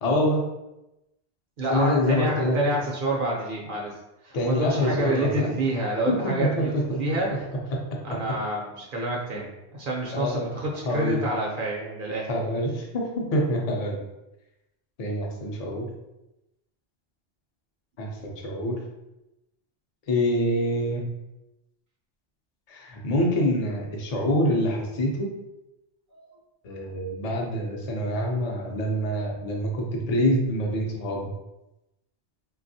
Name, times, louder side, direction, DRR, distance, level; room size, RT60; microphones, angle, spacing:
voice 1, 0.0-0.4 1.7-2.6 4.3-5.5 6.1-6.2 6.9-7.0 7.3-7.4 10.1-10.5 10.8-11.2 12.3-14.0 15.0-15.9 18.0-18.7 20.1-21.0 22.7-25.3 26.6-31.3, left 1 dB, 45° left, 0 dB, 0.6 m, -26 dB
voice 2, 1.6-3.9 4.2-7.5 8.0-12.3 26.1-26.3, right 1 dB, 60° right, -2 dB, 0.7 m, -28 dB
3.4 x 2.3 x 2.6 m, 0.94 s
omnidirectional pair, 1.1 m